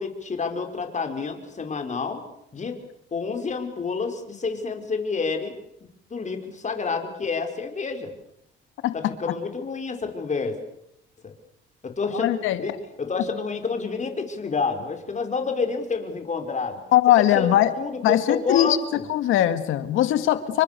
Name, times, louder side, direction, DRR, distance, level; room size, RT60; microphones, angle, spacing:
voice 1, 0.0-2.2 2.5-2.8 3.1-5.6 6.1-8.1 8.9-10.6 11.2-11.3 11.8-12.7 13.0-16.8 17.3-17.5 17.8-19.0, left 4 dB, 35° left, 6 dB, 5.2 m, -29 dB
voice 2, 12.1-12.6 16.9-17.7 18.0-20.6, left 12 dB, 90° left, 12 dB, 2.1 m, -20 dB
29.0 x 24.5 x 6.9 m, 0.76 s
cardioid pair, 90°, 20 cm